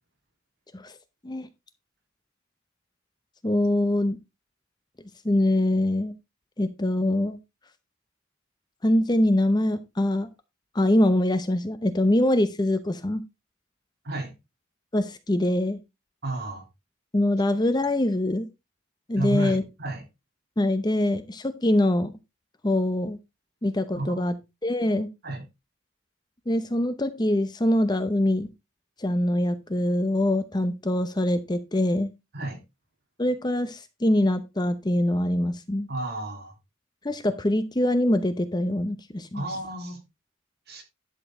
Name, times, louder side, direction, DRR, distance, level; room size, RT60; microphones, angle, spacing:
voice 1, 3.4-4.2 5.2-6.1 6.6-7.4 8.8-10.3 10.7-13.2 14.9-15.8 17.1-18.5 19.1-19.6 20.6-22.1 22.6-23.2 23.6-24.3 24.6-25.1 26.5-28.5 29.0-32.1 33.2-35.9 37.0-39.4, left 1 dB, 20° left, 0.7 m, -24 dB
voice 2, 16.2-16.6 19.2-20.0 24.0-24.4 25.2-25.4 32.3-32.6 35.9-36.5 39.3-40.0 40.7-40.8, right 2 dB, 50° right, 3.2 m, -32 dB
11.0 x 6.9 x 3.7 m
head